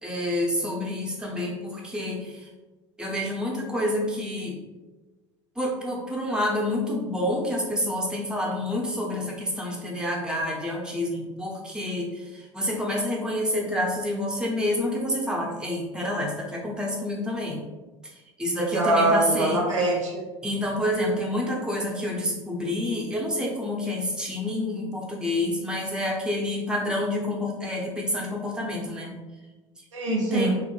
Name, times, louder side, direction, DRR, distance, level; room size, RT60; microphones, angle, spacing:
voice 1, 0.0-2.5 3.0-4.6 5.6-17.6 18.4-19.6 20.4-29.1 30.3-30.6, left 1 dB, 5° right, -2 dB, 0.6 m, -28 dB
voice 2, 18.6-20.2 29.9-30.6, right 2 dB, 80° right, -1 dB, 0.6 m, -23 dB
2.6 x 2.1 x 3.0 m, 1.2 s
figure-of-eight pair, 70°, 16 cm